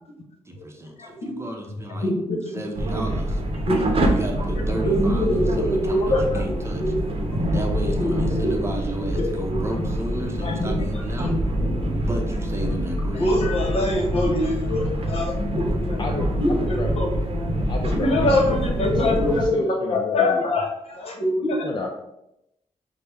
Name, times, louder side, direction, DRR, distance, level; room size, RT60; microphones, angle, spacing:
voice 1, 0.5-2.1 2.5-3.4 4.0-6.8 7.5-11.4 12.1-13.3, right 1 dB, 25° right, 2 dB, 0.7 m, -33 dB
voice 2, 1.0-1.3 1.9-2.4 3.5-4.0 4.6-7.3 8.0-9.6 10.4-11.3 11.6-11.9 13.1-16.0 16.3-17.2 17.9-21.7, left 1 dB, 60° left, 0 dB, 1.0 m, -25 dB
sound 1, 2.8-19.5, equal, 55° right, 0.7 m, -25 dB
voice 3, 16.0-17.2 17.7-18.1 18.5-18.6 19.0-20.4 21.6-21.9, left 3 dB, 40° left, 1 dB, 0.5 m, -31 dB
5.8 x 2.1 x 3.4 m, 0.85 s
cardioid pair, 100°, 11 cm